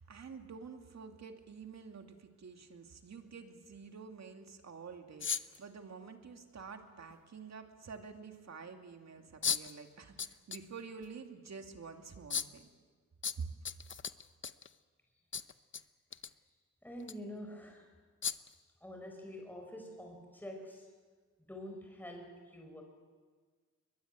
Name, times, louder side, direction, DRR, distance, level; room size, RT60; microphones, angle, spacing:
voice 1, 0.0-12.7 13.4-13.5, right 5 dB, 60° right, 5 dB, 2.5 m, -48 dB
sound 1, 5.2-5.6 7.1-7.2 9.4-9.7 10.2-10.6 11.0-11.1 12.3-12.6 13.2-14.7 15.3-15.8 16.1-16.3 17.0-17.1 18.2-18.5, left 6 dB, 40° left, 0.7 m, -36 dB
voice 2, 16.8-17.9 18.8-20.9 21.4-22.8, equal, 5° left, 2 dB, 4.5 m, -47 dB
22.5 x 21.0 x 9.2 m, 1.5 s
wide cardioid pair, 100°, 30 cm